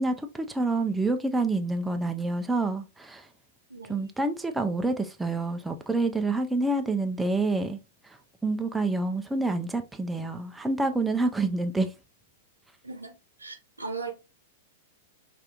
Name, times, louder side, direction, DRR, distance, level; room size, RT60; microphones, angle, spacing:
voice 1, 0.0-3.3 3.9-11.9, right 2 dB, 5° right, 0.4 m, -28 dB
voice 2, 3.7-4.1 12.8-13.1 13.4-14.1, right 4 dB, 85° right, 0.8 m, -37 dB
5.4 x 2.4 x 2.3 m
figure-of-eight pair, 100°, 0 cm